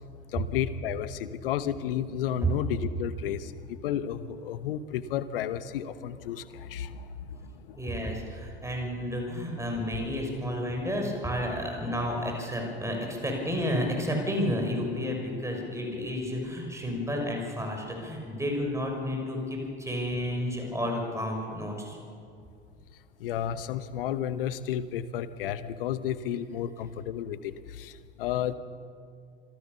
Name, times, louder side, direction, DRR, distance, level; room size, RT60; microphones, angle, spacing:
voice 1, 0.3-8.0 9.9-10.0 10.7-10.8 23.2-28.5, left 10 dB, 65° left, 14 dB, 1.1 m, -32 dB
voice 2, 7.8-22.0, equal, 10° right, 1 dB, 6.4 m, -31 dB
26.5 x 17.0 x 7.0 m, 2.3 s
figure-of-eight pair, 60°, 30 cm